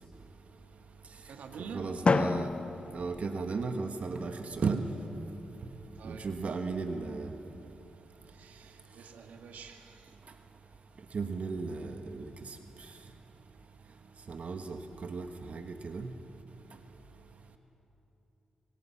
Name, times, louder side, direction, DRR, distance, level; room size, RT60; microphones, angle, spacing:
voice 1, 1.1-1.9 5.9-6.3 8.2-10.2, right 5 dB, 90° right, 4 dB, 1.9 m, -47 dB
voice 2, 1.7-2.5 2.9-4.8 6.0-7.3 11.1-12.5 14.3-16.1, right 4 dB, 60° right, 6 dB, 1.5 m, -35 dB
Drum, 2.1-4.0, left 4 dB, 45° left, 0.7 m, -30 dB
26.0 x 25.0 x 5.9 m, 2.9 s
cardioid pair, 65°, 3 cm